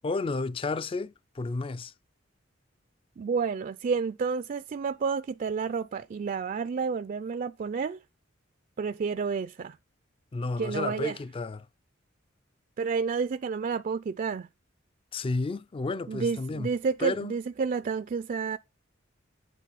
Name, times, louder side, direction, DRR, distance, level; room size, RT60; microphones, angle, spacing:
voice 1, 0.0-1.9 10.3-11.7 15.1-16.7 17.0-17.3, left 3 dB, 30° left, 0.4 m, -32 dB
voice 2, 3.2-8.0 8.8-9.8 10.6-11.2 12.8-14.5 16.1-18.6, right 5 dB, 45° right, 0.4 m, -30 dB
8.4 x 4.2 x 5.7 m
head